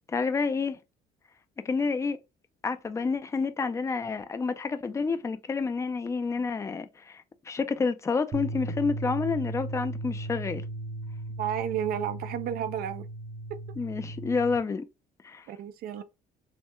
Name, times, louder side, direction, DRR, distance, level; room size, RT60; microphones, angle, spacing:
voice 1, 0.1-0.8 1.6-2.2 2.6-10.6 13.8-14.8 15.2-15.5, left 4 dB, 15° left, 0.4 m, -29 dB
sound 1, 8.3-14.6, right 2 dB, 35° right, 0.7 m, -36 dB
voice 2, 11.4-13.1 13.5-13.6 15.5-16.0, right 9 dB, 65° right, 0.5 m, -32 dB
3.2 x 2.1 x 2.9 m
cardioid pair, 110°, 17 cm